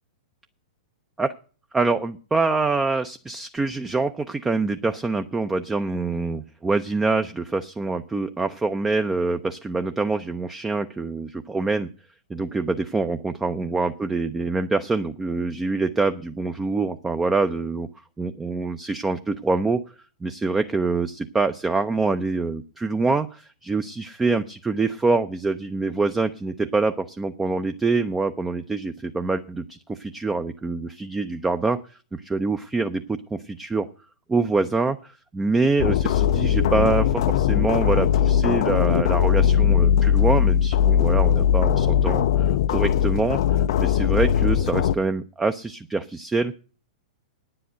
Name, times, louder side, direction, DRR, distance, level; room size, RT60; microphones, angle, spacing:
voice 1, 1.7-11.9 12.3-17.9 18.2-19.8 20.2-31.8 32.1-33.9 34.3-46.6, right 3 dB, 10° right, 9 dB, 0.6 m, -25 dB
sound 1, 35.8-44.9, left 9 dB, 50° left, 0.5 m, -20 dB
10.0 x 7.8 x 9.0 m, 0.38 s
figure-of-eight pair, 105°, 4 cm